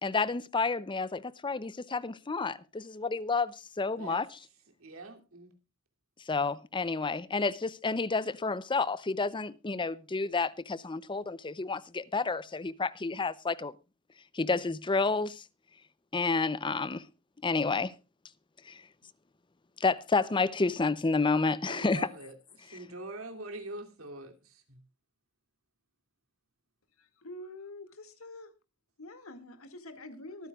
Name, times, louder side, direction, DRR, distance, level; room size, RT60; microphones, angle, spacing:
voice 1, 0.0-4.3 6.3-13.7 14.3-15.4 16.1-17.0 17.4-17.9 18.7-18.8 19.8-22.1, left 4 dB, 25° left, 0.6 m, -30 dB
voice 2, 4.8-5.5 21.7-24.8, right 2 dB, 80° right, 2.8 m, -44 dB
voice 3, 27.0-28.5 29.0-30.5, left 1 dB, 85° left, 2.2 m, -46 dB
24.0 x 9.5 x 2.4 m
head